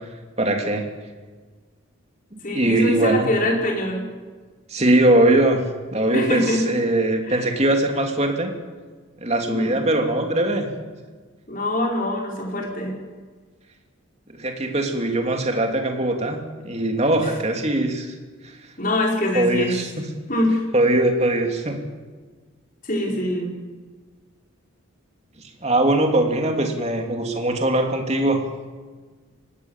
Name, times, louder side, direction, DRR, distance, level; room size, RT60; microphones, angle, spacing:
voice 1, 0.4-0.9 2.3-3.2 4.7-5.6 5.9-8.5 9.2-10.7 14.4-18.1 18.4-18.5 19.3-20.0 20.7-21.8 25.6-28.4, right 1 dB, 30° right, 3 dB, 3.1 m, -21 dB
voice 2, 2.4-4.0 6.1-6.6 7.2-7.5 9.5-9.8 11.5-13.0 18.8-19.7 20.3-20.6 22.8-23.5, left 1 dB, 40° left, 0 dB, 5.1 m, -24 dB
24.5 x 19.0 x 7.5 m, 1.4 s
head